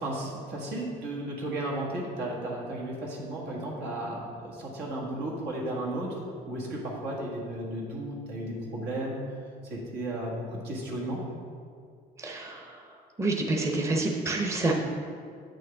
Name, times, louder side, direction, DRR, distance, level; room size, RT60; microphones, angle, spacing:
voice 1, 0.0-6.2 6.4-9.4 9.6-11.2, right 1 dB, 80° right, -3 dB, 1.8 m, -34 dB
voice 2, 12.2-14.7, right 2 dB, 15° right, 0 dB, 0.8 m, -28 dB
8.3 x 6.3 x 3.5 m, 2.2 s
cardioid pair, 110°, 17 cm